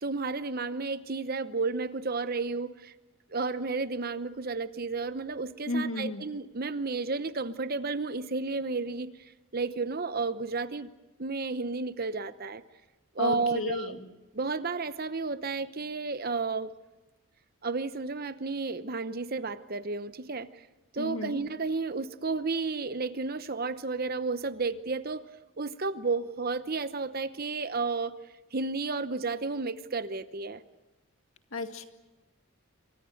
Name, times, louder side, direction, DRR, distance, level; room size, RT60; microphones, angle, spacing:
voice 1, 0.0-2.9 3.3-9.1 9.5-10.9 11.2-12.6 13.1-13.9 14.3-16.7 17.6-20.6 20.9-25.2 25.6-28.1 28.5-30.6, right 4 dB, 40° right, 13 dB, 0.9 m, -32 dB
voice 2, 5.7-6.2 13.2-14.1 21.0-21.4 31.5-31.9, left 3 dB, 65° left, 6 dB, 2.1 m, -33 dB
27.5 x 24.5 x 6.5 m, 1.1 s
head